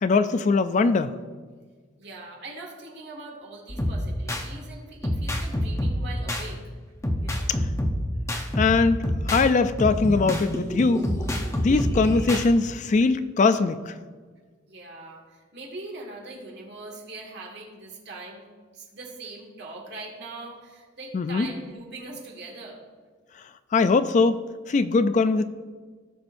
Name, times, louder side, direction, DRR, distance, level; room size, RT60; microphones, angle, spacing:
voice 1, 0.0-1.1 7.5-7.6 8.5-11.0 11.6-13.9 21.1-21.5 23.7-24.4 24.7-25.4, left 4 dB, 40° left, 12 dB, 0.3 m, -21 dB
voice 2, 2.0-6.6 7.2-7.6 14.7-18.5 18.7-22.8, right 2 dB, 60° right, -1 dB, 2.0 m, -41 dB
sound 1, 3.7-4.5 5.0-6.5 7.0-9.5 9.8-12.5, equal, 15° left, 0.8 m, -27 dB
17.0 x 6.3 x 2.6 m, 1.5 s
head